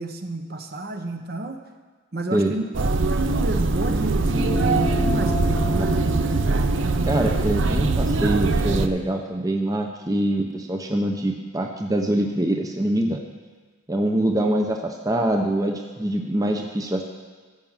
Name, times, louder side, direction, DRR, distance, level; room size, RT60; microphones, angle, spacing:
voice 1, 0.0-1.6 2.1-2.6 3.1-6.0, right 1 dB, 50° right, 5 dB, 0.9 m, -31 dB
sound 1, 2.7-8.9, right 3 dB, 65° right, 0.6 m, -22 dB
sound 2, 4.2-9.0, left 1 dB, 15° left, 0.7 m, -33 dB
voice 2, 7.0-13.2 13.9-17.0, right 1 dB, 15° right, 2 dB, 0.7 m, -24 dB
14.0 x 6.0 x 7.3 m, 1.5 s
head